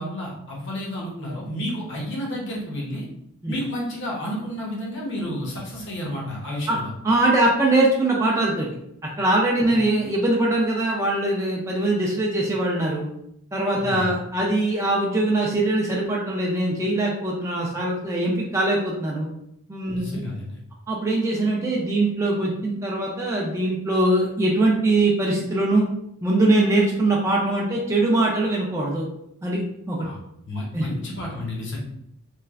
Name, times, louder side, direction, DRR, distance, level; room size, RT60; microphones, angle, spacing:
voice 1, 0.0-3.1 3.5-6.9 9.6-9.8 13.8-14.1 19.9-20.6 30.0-30.2 30.4-31.8, left 1 dB, 55° left, -3 dB, 0.8 m, -31 dB
voice 2, 7.0-8.7 9.0-13.1 13.5-19.3 19.7-20.2 20.9-25.9 26.2-29.0 29.4-29.6 29.9-30.1 30.7-30.9, right 2 dB, 15° right, -3 dB, 0.3 m, -22 dB
3.1 x 2.3 x 2.3 m, 0.76 s
head